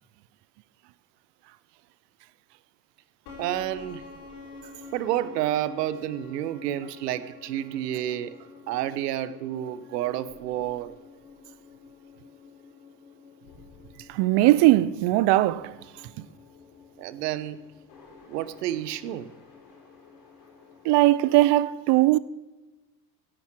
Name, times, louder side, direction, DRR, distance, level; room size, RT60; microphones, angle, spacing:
sound 1, 3.3-21.6, left 4 dB, 70° left, 5.2 m, -49 dB
voice 1, 3.4-4.0 4.9-8.4 8.7-11.0 17.0-17.6 18.3-19.3, right 12 dB, 80° right, 1.1 m, -30 dB
voice 2, 14.1-15.8 16.2-16.3 20.8-22.2, right 16 dB, 55° right, 0.8 m, -20 dB
17.0 x 15.0 x 4.6 m
hypercardioid pair, 65°, 48 cm